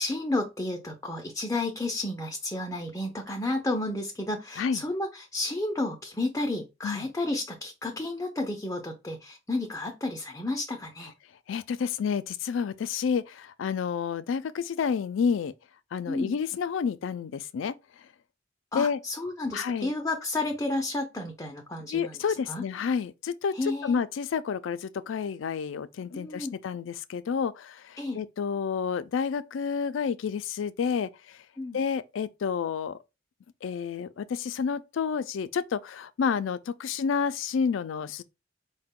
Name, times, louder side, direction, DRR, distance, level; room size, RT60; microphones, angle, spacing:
voice 1, 0.0-11.1 16.1-16.4 18.7-22.2 22.5-22.6 23.5-24.0 26.1-26.5 28.0-28.2 31.6-31.8, left 2 dB, 15° left, 0.5 m, -31 dB
voice 2, 11.5-15.5 15.9-17.7 18.7-19.0 19.5-19.9 21.9-31.1 31.7-33.0 33.6-38.2, left 6 dB, 75° left, 0.3 m, -29 dB
4.6 x 2.1 x 3.5 m
head